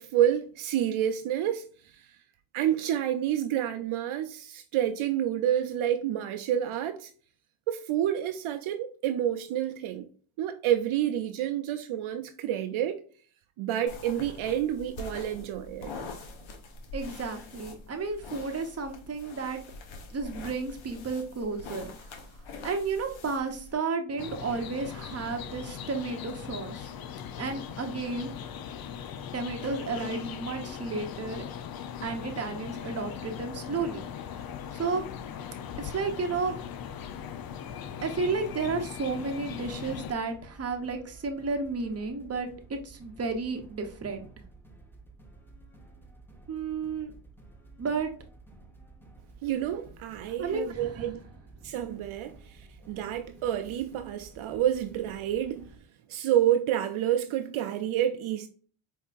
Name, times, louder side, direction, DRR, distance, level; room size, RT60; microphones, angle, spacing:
voice 1, 0.0-1.9 2.5-7.1 7.7-10.1 10.4-13.0 13.6-15.9 49.4-51.2 51.6-55.7 56.1-58.5, right 11 dB, 70° right, 0.6 m, -29 dB
sound 1, 13.9-23.7, left 3 dB, 70° left, 1.0 m, -44 dB
voice 2, 16.9-19.6 20.1-22.2 22.6-26.9 27.4-28.3 29.3-31.4 32.0-34.0 34.7-35.0 35.8-36.6 38.0-44.3 46.5-47.1 47.8-48.1 50.4-51.2 51.6-51.7, right 4 dB, 30° right, 0.9 m, -32 dB
sound 2, 24.2-40.1, left 8 dB, 50° left, 0.5 m, -39 dB
sound 3, 38.6-55.8, right 3 dB, 5° left, 0.8 m, -53 dB
4.5 x 2.8 x 2.4 m
cardioid pair, 70°, 50 cm